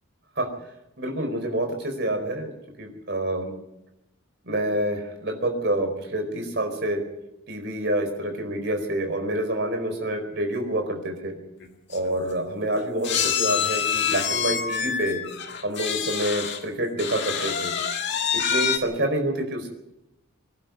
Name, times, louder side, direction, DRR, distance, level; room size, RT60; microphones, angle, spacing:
voice 1, 1.0-2.5 2.8-3.5 4.4-7.0 7.5-11.3 11.9-15.2 15.6-17.7 18.3-19.7, right 1 dB, 55° right, 5 dB, 4.5 m, -27 dB
sound 1, 11.6-11.7 11.9-12.1 13.0-16.6 17.0-18.8, left 7 dB, 55° left, 2.0 m, -26 dB
25.0 x 11.5 x 9.5 m, 0.88 s
head